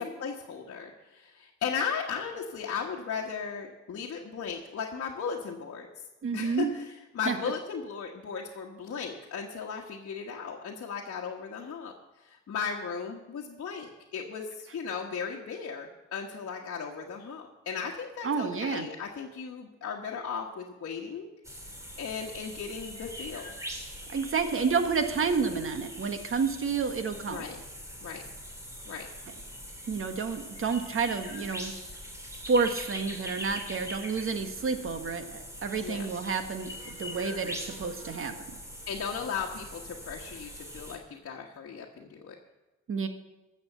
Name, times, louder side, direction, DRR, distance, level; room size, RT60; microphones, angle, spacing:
voice 1, 0.2-5.9 6.3-21.3 22.0-23.6 24.1-24.3 27.3-27.6 28.0-28.2 28.8-29.1 35.8-36.1 38.9-42.3, left 6 dB, 50° left, -2 dB, 1.4 m, -36 dB
voice 2, 6.2-6.7 7.2-7.4 18.2-18.9 24.1-27.4 29.9-31.7 32.5-38.3 42.9-43.1, right 5 dB, 45° right, 7 dB, 1.5 m, -30 dB
sound 1, 21.4-41.0, equal, 10° right, 2.9 m, -42 dB
13.5 x 7.2 x 6.8 m, 1.1 s
cardioid pair, 90°, 30 cm